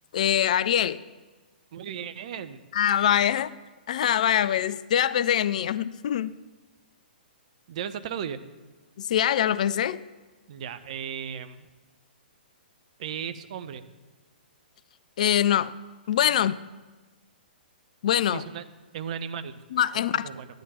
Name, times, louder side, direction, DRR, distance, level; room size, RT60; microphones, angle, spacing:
voice 1, 0.1-1.0 2.7-3.5 3.9-6.3 9.0-10.0 15.2-15.7 16.1-16.5 18.0-18.4 19.7-20.3, left 10 dB, 50° left, 17 dB, 0.4 m, -23 dB
voice 2, 1.7-2.6 7.7-8.4 10.5-11.7 13.0-13.8 16.3-16.5 18.3-18.6 18.9-19.6 20.1-20.5, right 8 dB, 45° right, 11 dB, 0.8 m, -35 dB
15.0 x 10.5 x 4.4 m, 1.3 s
figure-of-eight pair, 120°, 5 cm